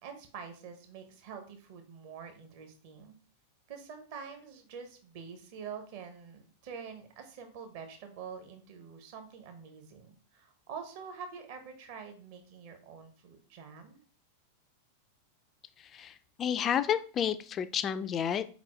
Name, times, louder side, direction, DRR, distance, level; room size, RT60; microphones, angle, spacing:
voice 1, 0.0-3.2 3.7-14.0, right 6 dB, 50° right, 6 dB, 1.0 m, -46 dB
voice 2, 15.8-18.5, left 9 dB, 25° left, 12 dB, 0.3 m, -31 dB
4.5 x 4.1 x 2.9 m, 0.39 s
figure-of-eight pair, 90°, 0 cm